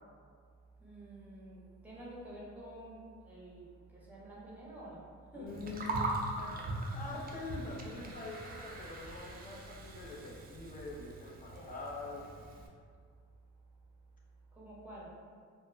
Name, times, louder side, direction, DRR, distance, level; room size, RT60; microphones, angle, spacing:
voice 1, 0.8-5.6 11.5-11.7 14.5-15.1, right 1 dB, 5° right, -7 dB, 0.8 m, -49 dB
voice 2, 5.3-6.0 6.4-6.6 6.9-12.2, left 3 dB, 25° left, -3 dB, 0.6 m, -44 dB
Gurgling, 5.5-12.7, right 2 dB, 30° right, 0.4 m, -41 dB
2.2 x 2.1 x 3.2 m, 2.1 s
cardioid pair, 90°, 30 cm